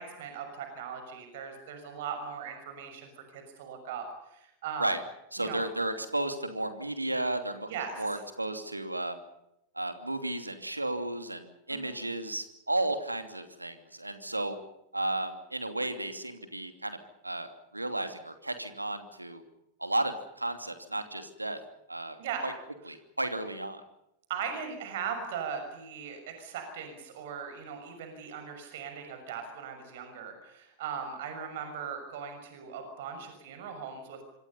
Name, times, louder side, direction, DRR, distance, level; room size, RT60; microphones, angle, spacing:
voice 1, 0.0-4.1 4.3-4.9 5.4-5.6 7.7-8.2 11.7-12.0 22.2-22.4 24.3-34.2, right 7 dB, 55° right, 6 dB, 6.3 m, -39 dB
voice 2, 5.3-7.7 8.0-9.2 9.7-14.6 14.9-17.0 17.2-19.4 19.8-21.6 21.9-22.2 22.4-22.5 22.9-23.8, right 2 dB, 85° right, 8 dB, 2.9 m, -33 dB
26.5 x 25.5 x 5.6 m, 0.82 s
figure-of-eight pair, 90°, 0 cm